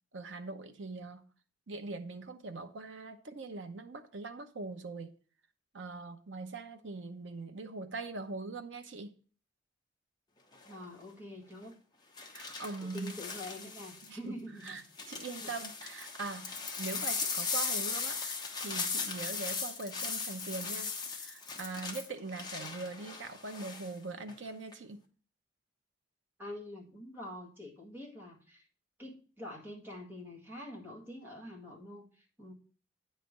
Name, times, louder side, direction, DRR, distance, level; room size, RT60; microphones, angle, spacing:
voice 1, 0.1-1.2 1.7-5.2 5.7-9.1 12.3-13.1 14.0-14.3 14.6-18.4 18.6-25.0, right 3 dB, 85° right, 0.8 m, -42 dB
sound 1, 10.5-10.8 12.2-14.1 14.6-23.9 24.3-24.7, left 5 dB, 25° left, 1.1 m, -38 dB
voice 2, 10.6-11.7 12.8-15.5 26.4-28.7 29.0-32.5, left 1 dB, 10° right, 1.9 m, -46 dB
9.2 x 3.3 x 6.6 m
head